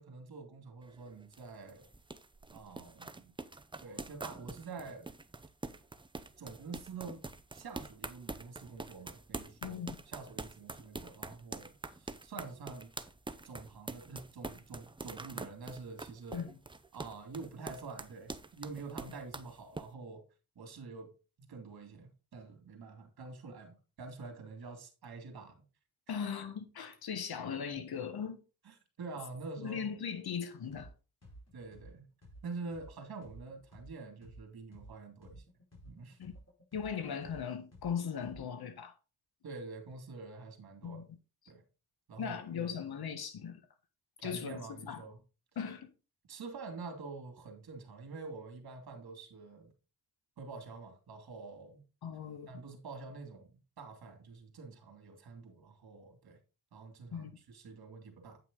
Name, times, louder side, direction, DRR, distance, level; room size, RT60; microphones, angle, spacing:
voice 1, 0.0-1.8 2.5-3.3 3.8-5.1 6.4-7.2 7.5-12.9 13.4-16.4 16.9-20.2 20.6-21.1 21.4-25.6 28.6-29.8 31.5-32.1 32.4-35.4 35.9-36.2 39.4-41.0 41.5-41.6 42.1-42.8 44.2-45.2 46.3-49.7 50.4-51.8 52.5-56.4 56.7-58.4, right 4 dB, 70° right, 2.5 m, -47 dB
sound 1, 0.8-19.9, right 3 dB, 15° right, 0.6 m, -45 dB
voice 2, 9.6-10.0 16.3-16.5 26.1-28.4 29.6-30.9 36.2-36.3 36.7-38.9 40.8-41.0 42.2-43.6 44.2-45.0 45.5-45.9 52.0-52.5 57.1-57.3, left 7 dB, 75° left, 1.6 m, -38 dB
sound 2, 30.7-30.9 31.2-34.9 35.2-38.6, right 1 dB, 40° left, 4.6 m, -54 dB
9.0 x 5.9 x 3.7 m
cardioid pair, 80°, 38 cm